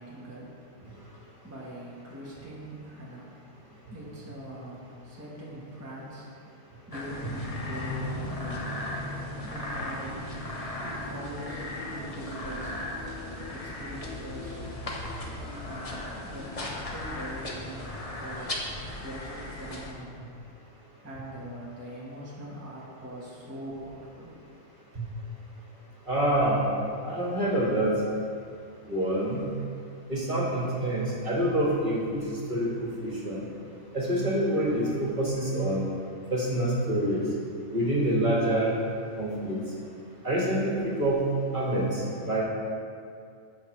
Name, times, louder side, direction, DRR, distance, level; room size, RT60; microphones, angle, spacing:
voice 1, 0.0-8.7 9.4-10.5 10.8-12.8 13.5-14.6 15.6-18.7 19.0-20.2 21.0-24.3, right 1 dB, 10° right, -6 dB, 1.3 m, -42 dB
sound 1, 6.9-19.9, left 1 dB, 30° left, 1.0 m, -36 dB
voice 2, 26.1-26.6 27.0-27.9 28.9-29.5 30.1-33.4 33.9-35.8 36.3-37.2 37.7-38.7 39.2-39.6 40.2-41.3 41.5-42.4, right 1 dB, 40° right, -5 dB, 1.9 m, -26 dB
15.5 x 5.7 x 3.3 m, 2.4 s
omnidirectional pair, 1.3 m